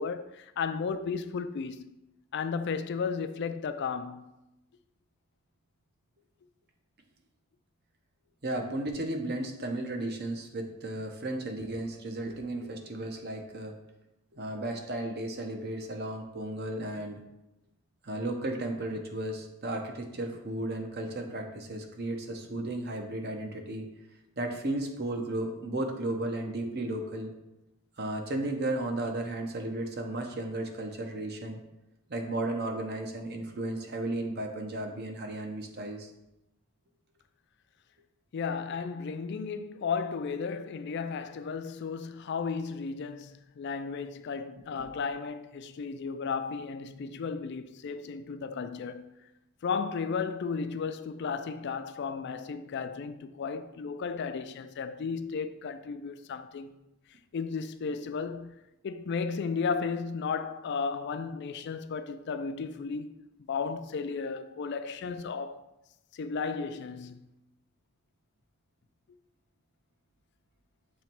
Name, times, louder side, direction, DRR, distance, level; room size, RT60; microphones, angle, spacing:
voice 1, 0.0-2.0 2.3-4.3 38.3-49.1 49.6-56.7 57.3-58.6 58.8-63.2 63.5-65.6 66.1-67.3, left 5 dB, 50° left, 0.3 m, -34 dB
voice 2, 8.4-13.8 14.3-17.2 18.0-23.9 24.4-27.3 28.0-31.6 32.1-36.1 44.7-44.9, right 1 dB, 45° right, 0.8 m, -34 dB
7.0 x 3.0 x 4.4 m
head